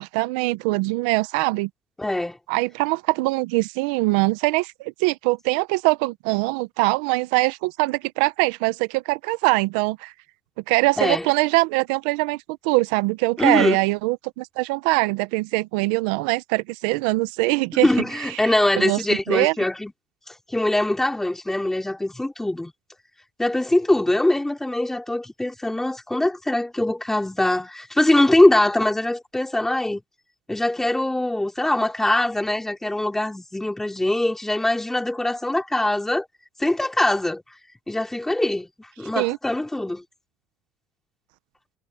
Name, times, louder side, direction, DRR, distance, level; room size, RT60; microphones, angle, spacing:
voice 1, 0.0-1.7 2.5-10.1 10.7-17.9 18.2-19.0 19.3-19.5 39.2-39.4, right 23 dB, 80° right, 0.9 m, -23 dB
voice 2, 2.0-2.4 11.0-11.3 13.4-13.8 17.7-19.9 20.3-22.7 23.4-30.0 30.5-36.2 36.6-37.4 37.9-40.0, left 1 dB, 10° left, 3.3 m, -22 dB
supercardioid pair, 85°, 5 cm